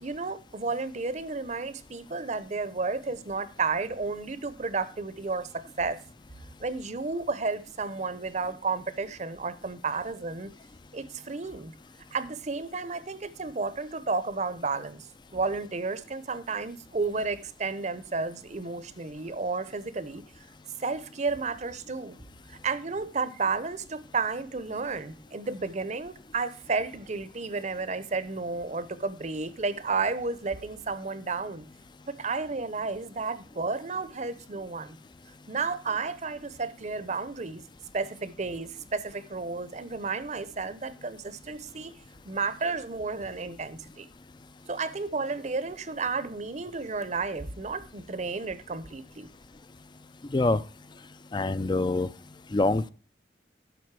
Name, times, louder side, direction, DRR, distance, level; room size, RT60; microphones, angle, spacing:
voice 1, 0.0-6.0 6.6-10.5 10.9-11.7 12.1-20.2 20.8-22.2 22.5-31.7 32.1-35.0 35.5-37.6 37.9-42.0 42.3-44.1 44.7-49.3, right 4 dB, 40° right, 0.7 m, -32 dB
voice 2, 51.3-52.1 52.5-52.9, left 2 dB, 25° left, 0.4 m, -25 dB
12.5 x 5.1 x 4.7 m
head